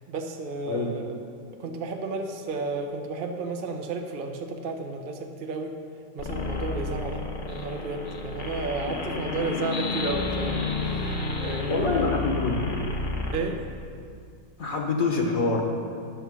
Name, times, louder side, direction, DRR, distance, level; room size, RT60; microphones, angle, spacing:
voice 1, 0.1-1.1 1.6-5.7 6.1-12.1 13.3-13.6, right 3 dB, 50° right, 4 dB, 0.6 m, -32 dB
sound 1, 6.2-13.4, left 3 dB, 35° left, 0.9 m, -31 dB
voice 2, 11.7-12.5 14.6-15.7, left 3 dB, 55° left, 0 dB, 1.3 m, -25 dB
10.0 x 6.7 x 6.1 m, 2.3 s
omnidirectional pair, 1.8 m